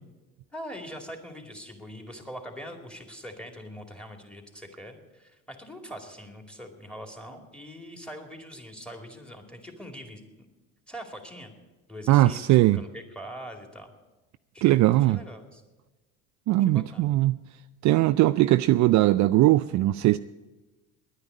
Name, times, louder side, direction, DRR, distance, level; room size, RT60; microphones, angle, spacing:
voice 1, 0.5-10.2 10.9-11.5 11.9-13.9 14.5-14.8 15.1-15.6 16.6-17.2, equal, 5° left, 2.3 m, -42 dB
voice 2, 12.1-12.8 14.6-15.2 16.5-17.4 17.8-20.2, right 16 dB, 50° right, 0.4 m, -20 dB
10.5 x 9.6 x 9.3 m
supercardioid pair, 90°, 37 cm